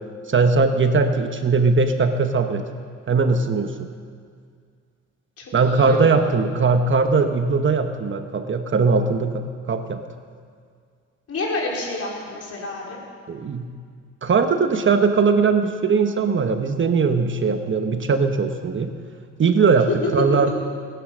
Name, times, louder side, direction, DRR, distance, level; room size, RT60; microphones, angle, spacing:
voice 1, 0.3-2.6 3.1-3.9 5.5-10.0 13.3-13.7 14.2-18.9 19.4-20.5, right 4 dB, 40° right, 7 dB, 1.2 m, -20 dB
voice 2, 5.4-6.3 11.3-13.0, left 2 dB, 50° left, -2 dB, 4.6 m, -30 dB
20.0 x 10.5 x 6.3 m, 2.1 s
cardioid pair, 90°, 30 cm